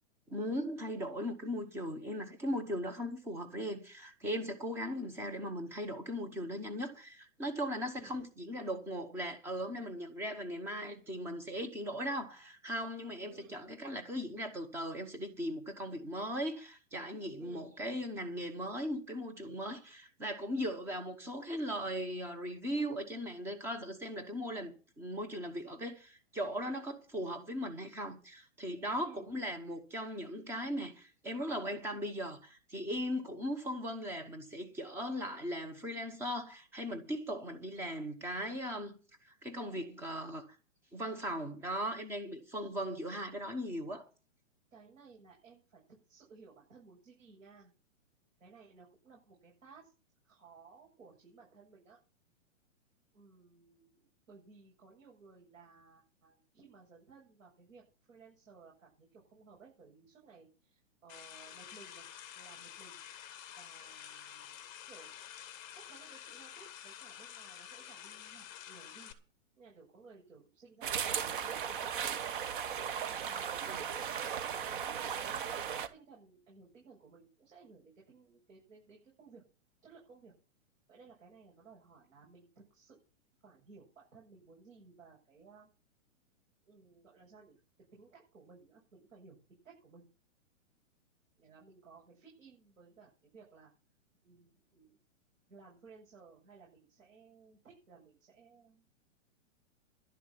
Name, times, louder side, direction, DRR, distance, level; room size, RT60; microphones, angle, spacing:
voice 1, 0.3-39.0 39.2-40.6 40.9-44.1 73.7-73.8, equal, 5° right, 0.9 m, -38 dB
voice 2, 13.3-13.6 17.4-17.7 29.0-29.3 44.7-47.7 48.4-49.9 50.2-52.0 53.1-57.8 58.1-63.0 63.6-65.1 65.7-69.1 69.6-71.6 73.0-79.4 79.8-80.3 80.9-83.0 83.4-85.7 86.7-87.6 87.9-90.1 91.4-93.7 94.2-95.0 95.5-98.9, right 4 dB, 75° right, 7.7 m, -58 dB
sound 1, 61.1-69.1, left 10 dB, 20° left, 1.3 m, -49 dB
sound 2, 70.8-75.9, right 8 dB, 40° right, 1.1 m, -36 dB
11.5 x 7.2 x 8.8 m
hypercardioid pair, 165°, 39 cm